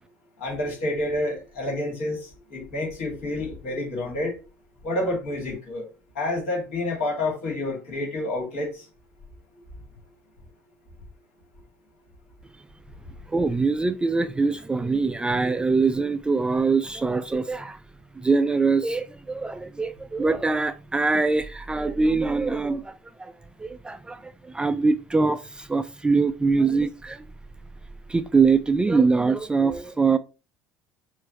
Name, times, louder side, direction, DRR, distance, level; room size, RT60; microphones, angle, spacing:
voice 1, 0.4-4.3 4.8-5.9 6.1-8.8, left 2 dB, 65° left, 2.3 m, -29 dB
voice 2, 13.3-17.8 18.2-23.3 23.6-27.2 28.1-30.2, right 4 dB, 10° right, 0.3 m, -23 dB
6.1 x 2.5 x 3.0 m
figure-of-eight pair, 60°, 7 cm